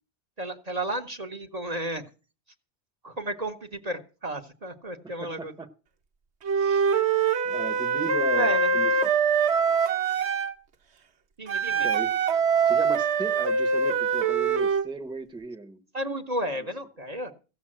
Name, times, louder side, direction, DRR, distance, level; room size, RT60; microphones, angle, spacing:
voice 1, 0.4-2.0 3.0-5.5 6.5-6.9 8.2-8.7 11.4-11.9 15.9-17.3, right 1 dB, 40° right, 1.1 m, -33 dB
voice 2, 5.2-5.7 7.4-8.9 11.8-12.1 12.6-15.8, right 2 dB, 5° right, 0.9 m, -36 dB
Wind instrument woodwind instrument, 6.5-10.5 11.5-14.9, right 5 dB, 85° right, 1.2 m, -24 dB
15.5 x 6.9 x 7.6 m
omnidirectional pair, 1.1 m